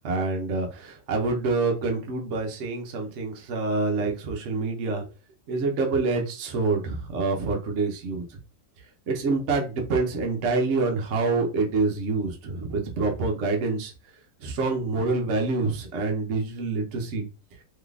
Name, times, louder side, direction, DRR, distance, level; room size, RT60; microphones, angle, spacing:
voice 1, 0.0-5.1 5.5-8.4 9.1-13.9 14.4-17.3, right 3 dB, 55° right, 1 dB, 1.0 m, -26 dB
3.6 x 3.2 x 2.4 m, 0.33 s
omnidirectional pair, 1.8 m